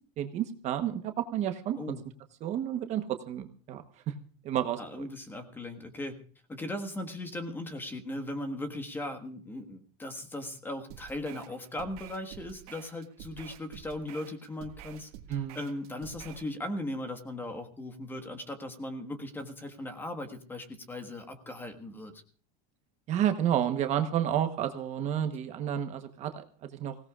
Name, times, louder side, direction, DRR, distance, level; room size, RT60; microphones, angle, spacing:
voice 1, 0.2-2.0 2.4-4.1 4.4-5.1 15.3-15.6 23.1-26.9, right 10 dB, 35° right, 7 dB, 1.1 m, -31 dB
voice 2, 4.8-6.2 6.5-22.2, left 1 dB, 10° left, 8 dB, 1.5 m, -38 dB
sound 1, 10.9-16.5, right 11 dB, 65° right, 1.8 m, -49 dB
24.5 x 17.0 x 2.4 m, 0.43 s
supercardioid pair, 155°, 20 cm